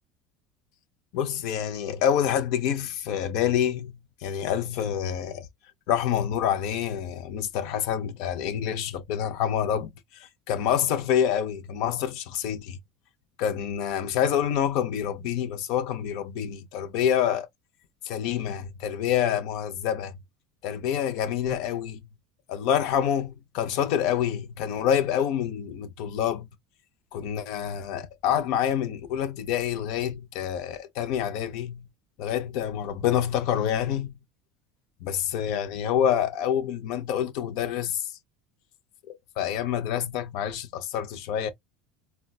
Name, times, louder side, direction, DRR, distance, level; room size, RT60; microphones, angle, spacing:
voice 1, 1.1-5.5 5.9-12.8 13.4-17.5 18.0-20.1 20.6-22.0 22.5-26.5 27.1-31.9 32.2-34.1 35.0-38.1 39.1-41.5, left 9 dB, 65° left, 0.6 m, -27 dB
3.9 x 2.2 x 2.2 m
supercardioid pair, 95°, 0 cm